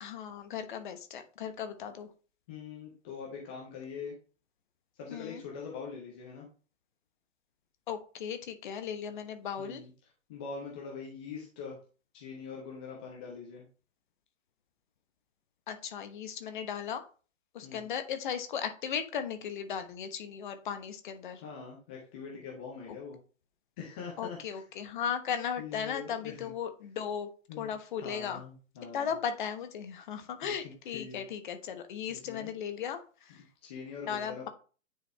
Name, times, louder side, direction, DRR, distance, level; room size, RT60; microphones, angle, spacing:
voice 1, 0.0-2.1 5.1-5.4 7.9-9.8 15.7-17.0 17.5-21.4 24.2-27.3 27.6-28.4 28.9-33.4 34.0-34.5, left 8 dB, 40° left, 8 dB, 1.1 m, -36 dB
voice 2, 2.5-4.2 5.0-6.5 9.6-9.9 10.3-11.8 12.1-13.6 17.6-17.9 21.4-23.2 23.8-24.6 25.6-26.5 27.5-27.7 28.0-29.1 30.4-30.6 30.9-31.3 32.1-32.5 33.3-34.5, left 5 dB, 10° left, -2 dB, 0.4 m, -43 dB
9.5 x 4.0 x 3.3 m, 0.37 s
figure-of-eight pair, 130°, 39 cm